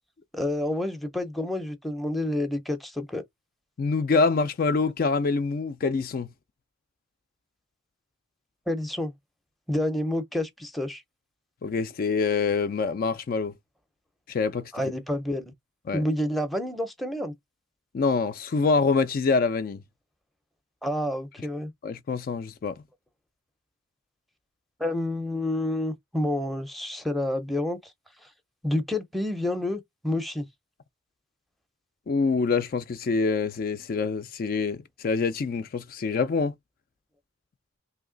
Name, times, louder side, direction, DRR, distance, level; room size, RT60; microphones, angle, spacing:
voice 1, 0.3-3.2 8.7-9.1 9.7-11.0 14.7-15.4 15.9-17.3 20.8-21.7 24.8-27.8 28.6-30.5, left 1 dB, ahead, 0.6 m, -29 dB
voice 2, 3.8-6.3 11.6-13.5 14.3-14.7 15.9-16.0 17.9-19.8 21.8-22.7 32.1-36.5, left 4 dB, 45° left, 0.3 m, -25 dB
3.0 x 2.8 x 3.8 m
head